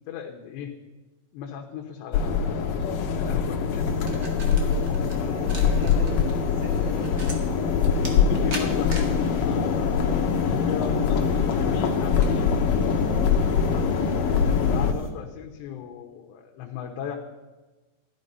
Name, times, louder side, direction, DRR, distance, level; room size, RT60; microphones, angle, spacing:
voice 1, 0.1-0.8 1.3-4.3 4.9-6.1 8.1-10.0 10.4-12.5 14.4-17.2, left 8 dB, 90° left, 0 dB, 3.2 m, -36 dB
sound 1, 2.1-14.9, left 6 dB, 70° left, 2.4 m, -23 dB
sound 2, 3.7-15.1, right 1 dB, 50° right, 1.1 m, -42 dB
voice 2, 5.3-7.2 13.0-13.4, right 3 dB, 80° right, 2 dB, 4.0 m, -39 dB
14.5 x 12.5 x 5.4 m, 1.2 s
omnidirectional pair, 4.9 m